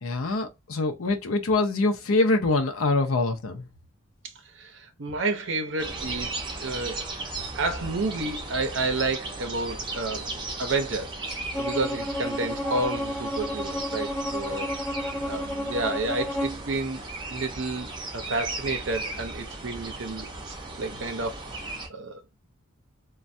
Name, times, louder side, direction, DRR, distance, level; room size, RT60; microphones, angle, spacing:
voice 1, 0.0-3.6, left 2 dB, 80° left, 0.6 m, -24 dB
voice 2, 4.5-7.1 7.5-11.2 11.6-14.7 15.3-17.0 17.3-17.9 18.1-20.3 20.8-21.5 21.9-22.2, right 3 dB, 65° right, 0.7 m, -30 dB
sound 1, 5.8-21.9, right 2 dB, 20° right, 0.7 m, -36 dB
Bowed string instrument, 11.5-16.6, left 1 dB, 10° left, 0.7 m, -31 dB
3.2 x 2.2 x 2.6 m
head